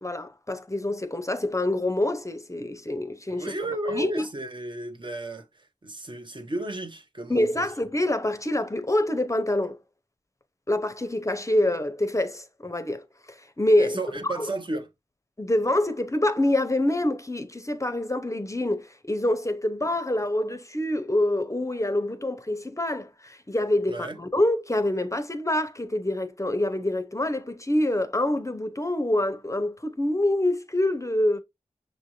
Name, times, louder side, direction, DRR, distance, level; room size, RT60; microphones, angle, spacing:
voice 1, 0.0-3.5 3.9-4.1 7.3-9.8 10.7-14.0 14.2-14.5 15.4-31.4, left 1 dB, 25° left, 0.6 m, -26 dB
voice 2, 3.3-7.7 13.8-14.9 23.9-24.2, right 1 dB, 40° right, 0.7 m, -33 dB
6.1 x 2.5 x 2.9 m
wide cardioid pair, 50°, 13 cm